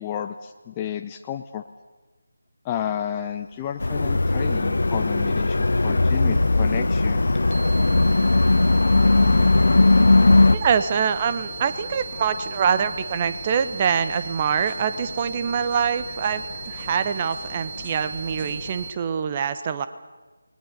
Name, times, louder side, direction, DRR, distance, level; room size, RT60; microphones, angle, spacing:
voice 1, 0.0-1.7 2.6-7.2, left 10 dB, 15° left, 5 dB, 0.7 m, -31 dB
sound 1, 3.0-18.9, left 4 dB, 35° left, 2.1 m, -40 dB
sound 2, 3.8-10.6, left 2 dB, 60° left, 1.2 m, -18 dB
sound 3, 7.5-18.9, right 7 dB, 40° right, 1.6 m, -38 dB
voice 2, 10.5-19.9, right 7 dB, 25° right, 11 dB, 1.2 m, -24 dB
29.0 x 21.0 x 6.8 m, 1.2 s
figure-of-eight pair, 160°, 0 cm